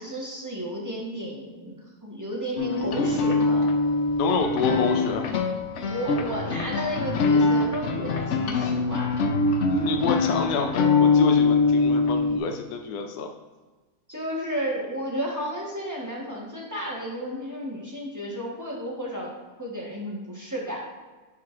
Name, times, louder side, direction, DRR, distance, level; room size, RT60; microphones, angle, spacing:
voice 1, 0.0-3.7 4.7-4.8 5.9-9.1 14.1-19.3 19.6-20.8, equal, 15° right, -4 dB, 1.0 m, -32 dB
sound 1, 2.6-12.4, left 4 dB, 60° left, 0.8 m, -23 dB
voice 2, 4.2-5.3 9.7-13.3, left 4 dB, 85° left, 4 dB, 1.2 m, -28 dB
9.8 x 4.3 x 2.5 m, 1.3 s
omnidirectional pair, 1.7 m